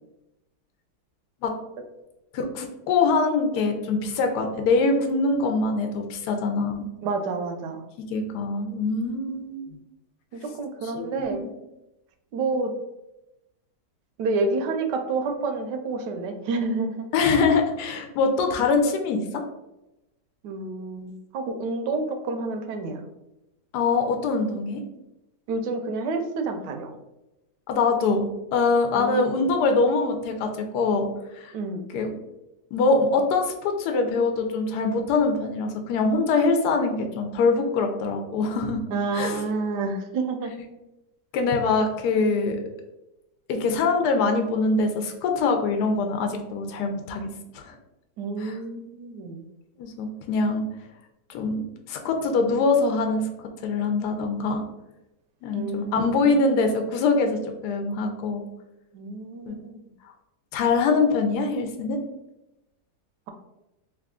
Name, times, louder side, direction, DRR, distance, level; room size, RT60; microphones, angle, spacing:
voice 1, 2.3-6.9 8.1-9.8 10.9-11.5 17.1-19.4 23.7-24.8 27.7-31.0 31.4-31.5 31.9-32.1 32.7-38.8 39.1-39.4 41.3-42.6 43.5-47.3 47.5-47.7 48.4-48.5 49.8-50.6 51.3-51.6 51.9-53.2 53.6-54.6 55.4-58.4 59.5-59.6 60.5-62.0, left 4 dB, 75° left, 4 dB, 1.1 m, -23 dB
voice 2, 7.0-7.8 10.3-11.5 12.3-12.7 14.2-17.1 20.4-23.1 25.5-26.9 28.9-29.4 31.5-31.9 38.9-40.5 48.2-49.4 55.5-56.4 58.9-59.9, right 3 dB, 90° right, 5 dB, 1.2 m, -29 dB
3.3 x 2.3 x 3.6 m, 0.93 s
omnidirectional pair, 1.8 m